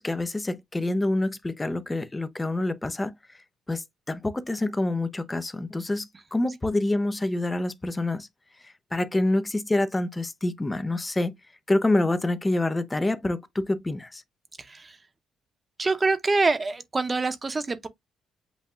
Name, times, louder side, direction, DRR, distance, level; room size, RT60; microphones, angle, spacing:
voice 1, 0.0-3.1 3.7-8.3 8.6-11.3 11.7-14.2, left 2 dB, 15° left, 0.6 m, -27 dB
voice 2, 14.6-15.0 15.8-17.9, right 3 dB, 25° right, 0.9 m, -25 dB
8.0 x 2.7 x 2.4 m
cardioid pair, 90°, 0 cm